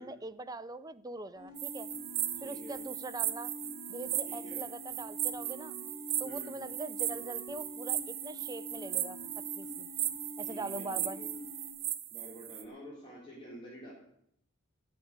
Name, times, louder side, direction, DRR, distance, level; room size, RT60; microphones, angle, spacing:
voice 1, 0.0-1.9 2.4-3.5 3.9-5.7 6.2-9.2 9.6-9.9 10.4-11.2, right 2 dB, 20° right, 12 dB, 0.6 m, -42 dB
sound 1, 1.3-11.7, left 2 dB, 65° left, 6.5 m, -47 dB
sound 2, 1.6-12.6, right 13 dB, 90° right, 1.2 m, -37 dB
voice 2, 2.4-2.8 4.2-4.6 6.2-6.5 10.4-11.3 12.1-13.9, equal, 25° left, -6 dB, 3.8 m, -48 dB
10.5 x 8.0 x 9.5 m, 0.73 s
head